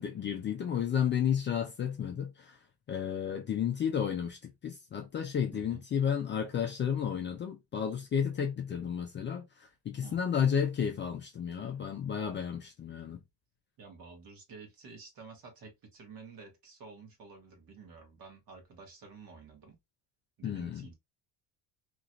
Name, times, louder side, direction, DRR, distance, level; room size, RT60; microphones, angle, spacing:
voice 1, 0.0-2.6 2.9-13.2 20.4-20.9, left 8 dB, 25° left, 0.4 m, -32 dB
voice 2, 5.5-5.8 10.0-10.2 13.8-19.8 20.4-20.9, right 4 dB, 50° right, 1.4 m, -51 dB
3.0 x 2.6 x 2.5 m
cardioid pair, 140°, 44 cm